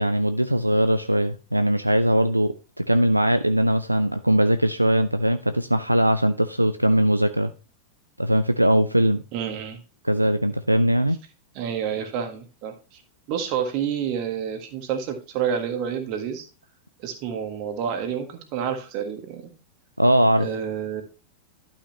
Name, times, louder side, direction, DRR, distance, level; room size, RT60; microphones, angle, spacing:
voice 1, 0.0-7.5 8.2-9.2 10.0-11.2 20.0-20.5, right 1 dB, 85° right, 0.4 m, -20 dB
voice 2, 9.3-9.8 11.5-13.0 13.3-16.4 17.0-19.4 20.4-21.0, right 8 dB, 45° right, 1.6 m, -29 dB
11.5 x 5.7 x 3.0 m
figure-of-eight pair, 90°, 0 cm